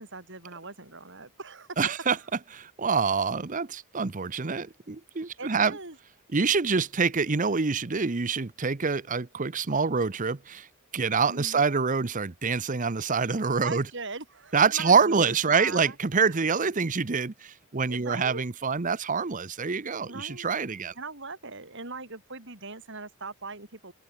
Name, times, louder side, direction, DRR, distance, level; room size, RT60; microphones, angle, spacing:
voice 1, 0.0-2.1 5.4-6.0 11.3-11.6 13.6-16.0 16.2-16.4 17.9-18.4 20.1-20.5 21.0-23.9, right 3 dB, 55° right, 5.9 m, -40 dB
voice 2, 1.8-2.2 2.5-5.8 6.3-10.7 10.9-13.9 14.5-20.9, right 5 dB, 35° right, 0.8 m, -26 dB
open air
head